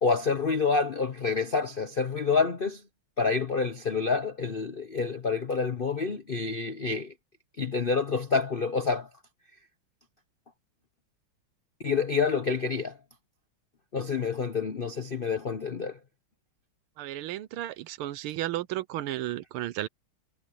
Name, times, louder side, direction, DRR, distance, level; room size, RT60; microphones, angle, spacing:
voice 1, 0.0-2.8 3.2-7.1 7.6-9.1 11.8-13.0 13.9-16.0, left 4 dB, 60° left, 0.5 m, -28 dB
voice 2, 17.0-19.9, right 14 dB, 85° right, 1.6 m, -33 dB
omnidirectional pair, 2.3 m